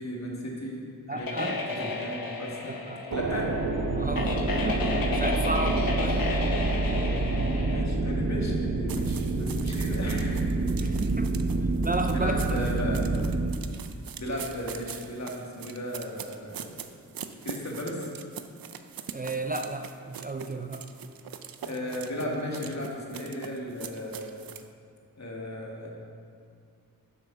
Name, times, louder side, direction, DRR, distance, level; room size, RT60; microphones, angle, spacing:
voice 1, 0.0-1.5 1.8-2.7 3.1-3.5 6.0-10.5 12.1-13.1 14.2-16.9 17.4-18.1 21.6-24.4 25.2-25.9, equal, 55° left, -2 dB, 1.8 m, -35 dB
voice 2, 1.1-1.6 2.9-3.4 4.0-4.8 5.1-6.3 10.8-11.3 11.8-12.6 19.1-20.8, right 2 dB, 25° right, 5 dB, 0.4 m, -33 dB
sound 1, 1.2-7.8, left 3 dB, 85° left, 1.1 m, -32 dB
sound 2, 3.1-13.5, right 3 dB, 60° right, 0.8 m, -27 dB
sound 3, 8.9-24.7, right 8 dB, 90° right, 0.5 m, -43 dB
7.7 x 6.5 x 6.0 m, 2.3 s
wide cardioid pair, 90°, 34 cm